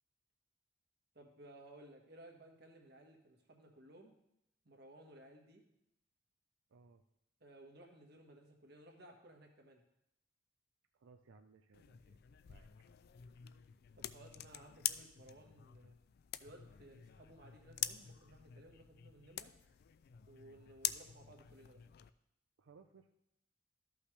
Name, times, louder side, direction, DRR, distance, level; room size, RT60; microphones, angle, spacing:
voice 1, 1.1-4.1 4.6-5.6 7.4-9.8 13.9-15.9 16.4-19.5 20.3-21.8, right 1 dB, 55° right, 2 dB, 1.4 m, -59 dB
voice 2, 6.7-7.0 10.9-12.7 22.6-23.1, right 4 dB, 90° right, 6 dB, 0.5 m, -63 dB
sound 1, 11.7-22.1, left 13 dB, 55° left, 0.3 m, -46 dB
13.0 x 5.6 x 3.3 m, 0.82 s
head